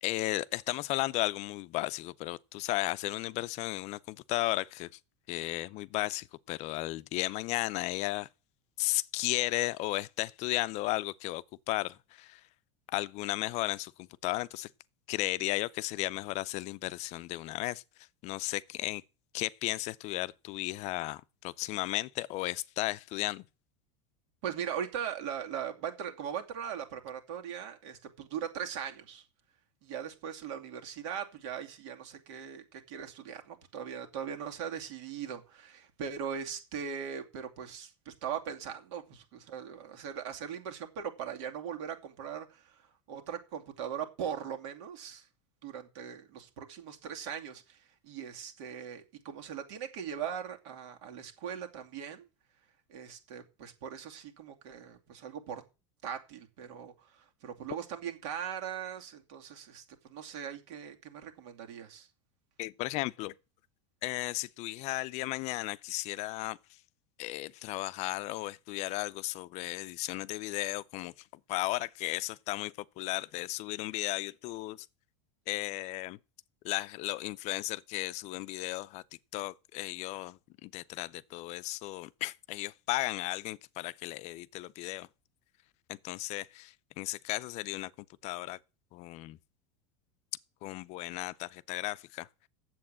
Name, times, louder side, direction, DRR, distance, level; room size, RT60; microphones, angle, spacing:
voice 1, 0.0-4.9 5.3-8.3 8.8-12.4 12.9-14.7 15.1-17.8 18.2-19.0 19.3-23.4 62.6-63.3 64.0-66.6 67.2-71.1 71.5-74.9 75.5-76.2 76.6-79.0 79.3-85.1 85.9-87.9 88.2-88.6 88.9-89.4 90.6-92.3, left 18 dB, 45° left, 0.5 m, -34 dB
voice 2, 24.4-29.2 29.8-42.8 43.1-45.3 45.6-52.3 52.9-55.6 56.0-59.8 60.1-62.1, right 8 dB, 70° right, 2.6 m, -40 dB
8.6 x 7.7 x 7.4 m
supercardioid pair, 130°, 16 cm